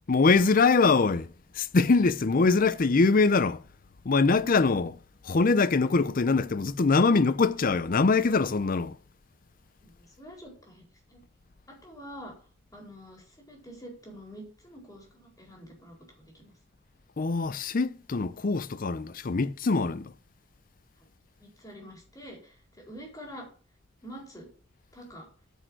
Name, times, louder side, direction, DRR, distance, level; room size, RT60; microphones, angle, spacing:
voice 1, 0.1-1.3 1.6-3.6 4.0-5.0 5.2-9.0 17.2-20.1, left 4 dB, 45° left, 0.6 m, -23 dB
voice 2, 9.8-11.2 11.7-12.4 12.7-16.5 21.4-23.5 24.0-24.5 24.9-25.3, equal, 20° left, 4.1 m, -46 dB
9.1 x 6.5 x 6.3 m
head